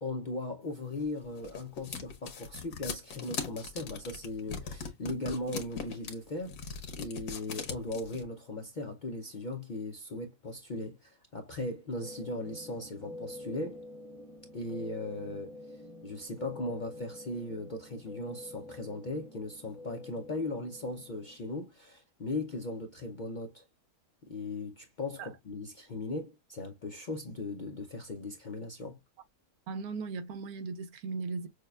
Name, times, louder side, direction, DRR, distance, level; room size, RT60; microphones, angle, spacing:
voice 1, 0.0-13.8 14.5-23.6 24.3-29.0, left 2 dB, 60° left, 0.5 m, -38 dB
sound 1, 1.0-8.2, left 6 dB, 85° left, 1.5 m, -40 dB
sound 2, 12.0-21.4, left 1 dB, 5° left, 1.1 m, -47 dB
voice 2, 29.7-31.5, right 4 dB, 90° right, 1.2 m, -37 dB
6.3 x 2.2 x 2.3 m
omnidirectional pair, 1.5 m